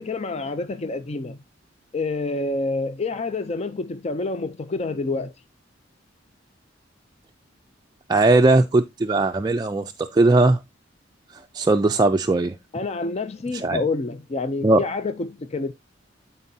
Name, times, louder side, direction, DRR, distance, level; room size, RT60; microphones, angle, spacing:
voice 1, 0.0-1.4 1.9-5.3 12.7-15.7, left 3 dB, 35° left, 0.5 m, -28 dB
voice 2, 8.1-10.6 11.5-12.6 13.5-13.8 14.6-14.8, right 2 dB, 20° right, 0.4 m, -19 dB
12.5 x 4.4 x 2.7 m
head